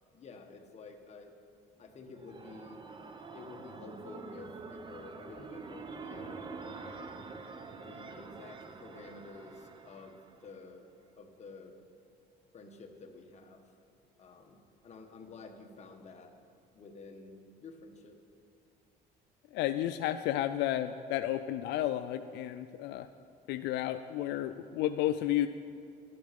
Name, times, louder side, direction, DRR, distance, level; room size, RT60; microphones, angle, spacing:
voice 1, 0.1-1.3 1.8-2.8 3.3-6.4 6.7-7.2 7.7-10.9 11.2-11.8 12.5-13.6 14.2-16.3 16.7-18.2, left 3 dB, 40° left, 3 dB, 1.4 m, -50 dB
sound 1, 1.9-10.7, right 4 dB, 30° right, 0.8 m, -46 dB
voice 2, 19.5-23.1 23.5-25.5, left 13 dB, 85° left, 10 dB, 0.4 m, -32 dB
12.0 x 9.3 x 5.2 m, 2.5 s
cardioid pair, 110°, 17 cm